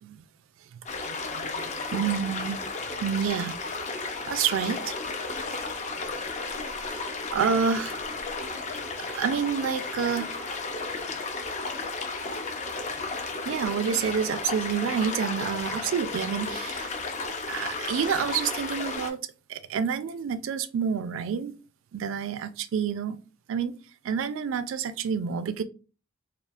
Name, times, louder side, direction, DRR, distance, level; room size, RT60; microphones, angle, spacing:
voice 1, 0.7-2.7 3.0-3.6 4.3-4.9 7.3-8.0 9.0-10.3 13.5-16.9 17.5-19.2 19.5-21.5 21.9-23.2 23.5-23.8 24.0-25.6, right 7 dB, 70° right, 0.3 m, -28 dB
sound 1, 0.9-19.1, left 3 dB, 35° left, 0.5 m, -33 dB
3.6 x 2.4 x 2.4 m
head